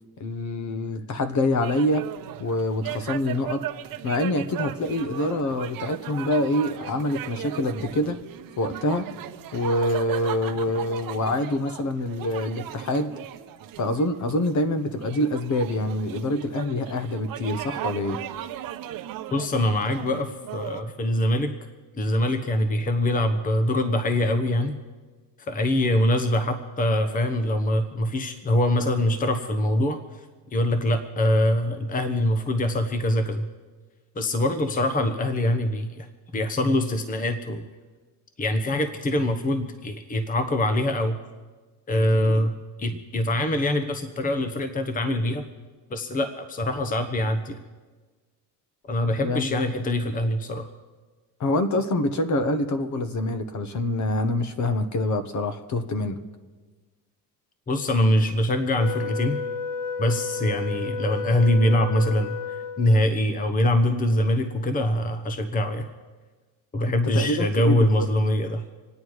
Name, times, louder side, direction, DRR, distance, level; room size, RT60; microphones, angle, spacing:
voice 1, 0.2-2.1 2.4-3.6 4.0-8.2 8.6-9.1 9.5-13.1 13.8-18.2 49.2-49.8 51.4-56.2 66.8-68.1, left 1 dB, 45° left, 9 dB, 1.4 m, -26 dB
sound 1, 1.6-20.8, right 12 dB, 55° right, 1.0 m, -37 dB
voice 2, 19.3-21.5 22.0-24.8 25.5-30.0 30.5-33.4 34.1-36.1 36.3-37.6 38.4-41.2 41.9-42.5 42.8-45.4 45.9-47.6 48.9-50.7 57.7-59.4 60.0-65.9 66.7-68.6, left 1 dB, 20° left, 8 dB, 1.0 m, -23 dB
Wind instrument woodwind instrument, 58.8-63.2, left 5 dB, 65° left, 1.0 m, -32 dB
27.0 x 9.2 x 4.8 m, 1.4 s
cardioid pair, 115°, 42 cm